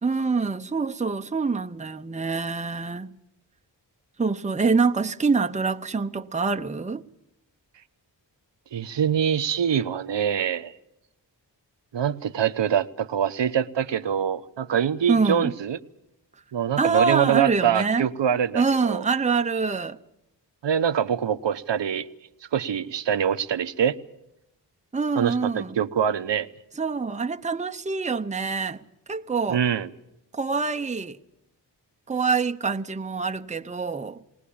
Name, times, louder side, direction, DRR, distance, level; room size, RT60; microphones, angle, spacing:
voice 1, 0.0-3.1 4.2-7.0 15.1-15.5 16.8-18.1 18.5-20.0 24.9-25.8 26.8-28.8 29.1-29.6 30.3-31.2 32.1-34.2, right 4 dB, 15° right, 0.8 m, -25 dB
voice 2, 8.7-10.7 11.9-15.8 16.5-19.1 20.6-22.1 22.5-24.0 25.2-26.5 29.5-29.9, right 8 dB, 80° right, 0.9 m, -24 dB
20.5 x 19.5 x 8.6 m
cardioid pair, 65°, 43 cm